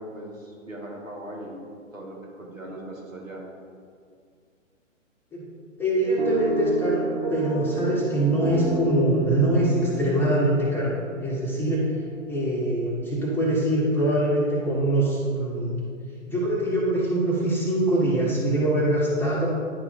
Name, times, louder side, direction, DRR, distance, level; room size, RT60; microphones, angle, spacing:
voice 1, 0.0-1.6 1.9-3.4, right 1 dB, 85° right, -1 dB, 1.7 m, -39 dB
voice 2, 5.8-10.9 11.2-11.8 12.3-15.7 16.3-19.5, right 1 dB, 5° left, -6 dB, 1.0 m, -23 dB
sound 1, 6.2-12.2, right 1 dB, 55° right, 1.3 m, -31 dB
9.6 x 4.2 x 4.4 m, 2.2 s
figure-of-eight pair, 125°, 39 cm